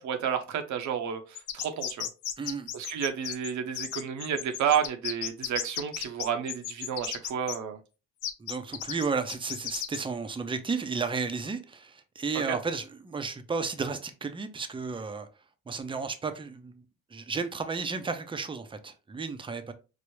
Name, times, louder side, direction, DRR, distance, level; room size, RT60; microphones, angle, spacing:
voice 1, 0.0-2.1 2.7-7.8 12.5-12.6, right 8 dB, 70° right, 0.7 m, -31 dB
sound 1, 1.3-7.6 8.2-10.0, left 11 dB, 90° left, 0.5 m, -34 dB
voice 2, 2.4-2.7 8.4-15.3 15.7-16.8 17.1-19.7, right 4 dB, 15° right, 0.5 m, -33 dB
4.7 x 2.0 x 3.0 m
cardioid pair, 90°, 30 cm